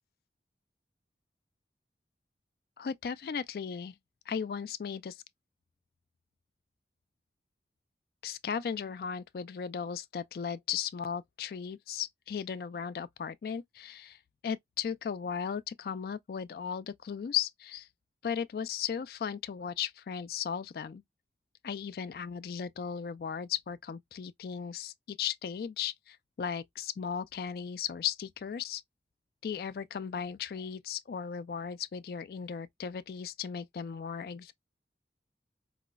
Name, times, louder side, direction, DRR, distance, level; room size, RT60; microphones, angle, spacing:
voice 1, 2.8-3.9 4.3-5.2 8.2-14.2 14.4-17.9 18.2-21.0 21.6-28.8 29.4-34.5, left 7 dB, 55° left, 0.3 m, -36 dB
4.8 x 2.0 x 2.2 m
head